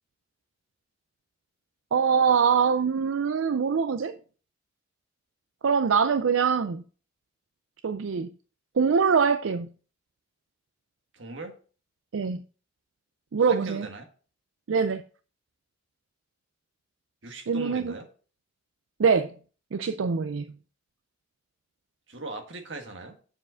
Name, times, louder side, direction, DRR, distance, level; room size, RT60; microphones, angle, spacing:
voice 1, 1.9-4.2 5.6-6.8 7.8-8.3 8.8-9.7 12.1-12.4 13.3-13.9 14.7-15.0 17.5-17.9 19.0-19.3 19.7-20.5, right 6 dB, 90° right, 0.5 m, -23 dB
voice 2, 11.1-11.6 13.4-14.1 17.2-18.1 22.1-23.2, right 2 dB, 65° right, 1.6 m, -39 dB
7.3 x 4.9 x 6.2 m
head